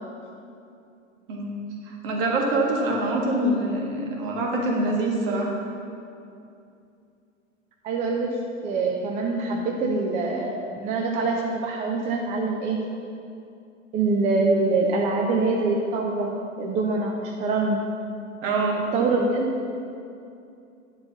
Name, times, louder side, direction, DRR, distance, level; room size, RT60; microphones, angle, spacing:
voice 1, 1.9-5.6 18.4-18.9, right 2 dB, 45° right, -1 dB, 1.8 m, -25 dB
voice 2, 7.8-12.8 13.9-17.9 18.9-19.6, right 3 dB, 20° right, 1 dB, 0.5 m, -24 dB
9.7 x 4.0 x 6.8 m, 2.6 s
figure-of-eight pair, 95°, 39 cm